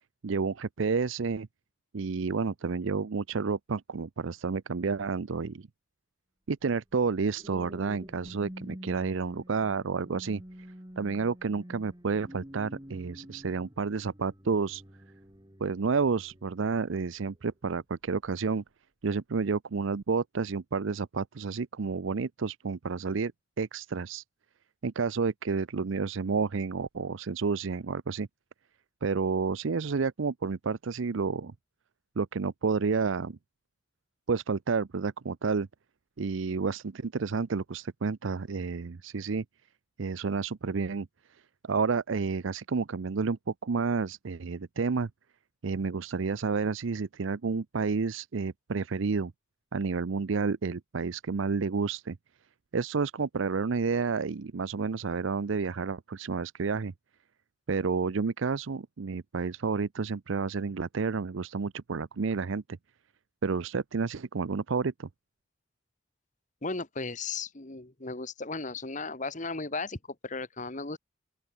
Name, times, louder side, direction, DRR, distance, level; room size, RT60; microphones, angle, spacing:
voice 1, 0.2-1.5 1.9-5.7 6.5-10.4 11.0-14.8 15.6-18.6 19.0-23.3 23.6-24.2 24.8-28.3 29.0-31.5 32.2-33.4 34.3-35.7 36.2-39.4 40.0-41.1 41.6-45.1 45.6-49.3 49.7-52.2 52.7-56.9 57.7-62.6 63.4-65.1, right 4 dB, 70° right, 0.6 m, -30 dB
sound 1, 7.3-17.5 18.1-18.4, equal, 20° right, 3.0 m, -48 dB
voice 2, 66.6-71.0, left 3 dB, 35° left, 1.7 m, -36 dB
open air
head